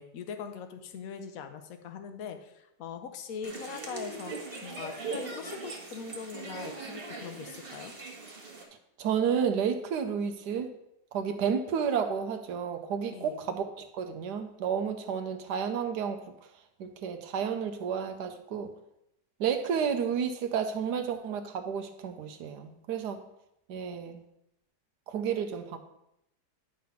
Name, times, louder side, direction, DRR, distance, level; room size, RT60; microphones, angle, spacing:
voice 1, 0.0-4.3 4.6-7.9 13.1-13.4, left 7 dB, 60° left, 8 dB, 1.1 m, -41 dB
sound 1, 3.4-8.7, right 3 dB, 35° right, 1.3 m, -40 dB
voice 2, 9.0-10.7 11.1-16.3 16.8-18.7 19.4-23.2 23.7-24.2 25.1-25.8, right 7 dB, 75° right, 8 dB, 1.2 m, -31 dB
10.5 x 3.8 x 5.7 m, 0.83 s
omnidirectional pair, 1.9 m